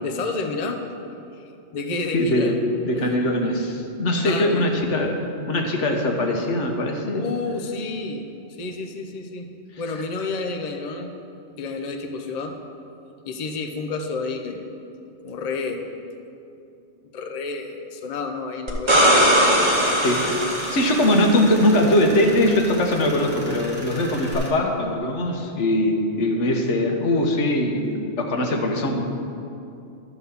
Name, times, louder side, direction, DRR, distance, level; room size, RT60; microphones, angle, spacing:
voice 1, 0.0-0.8 1.4-1.5 1.7-2.6 2.9-3.2 4.2-4.6 7.1-8.3 8.6-9.5 9.8-11.1 11.6-12.6 13.2-14.8 15.2-15.9 17.1-18.9 21.1-21.2, left 3 dB, 40° left, 4 dB, 0.7 m, -30 dB
voice 2, 2.1-2.6 2.8-5.1 5.5-7.2 20.0-20.2 20.7-29.0, left 1 dB, 80° left, 2 dB, 1.3 m, -21 dB
sound 1, 18.7-21.5 24.3-24.4, equal, 25° right, 1.1 m, -19 dB
Tools, 19.4-24.5, equal, 10° left, 1.5 m, -38 dB
12.0 x 4.1 x 6.9 m, 2.7 s
omnidirectional pair, 1.2 m